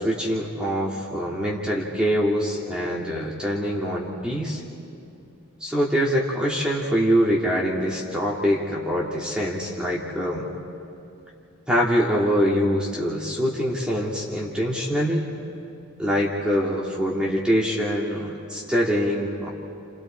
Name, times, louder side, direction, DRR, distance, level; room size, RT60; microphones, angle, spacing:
voice 1, 0.0-4.6 5.6-10.5 11.7-15.3 16.0-19.5, equal, 5° right, -4 dB, 2.1 m, -24 dB
30.0 x 28.5 x 4.4 m, 2.7 s
head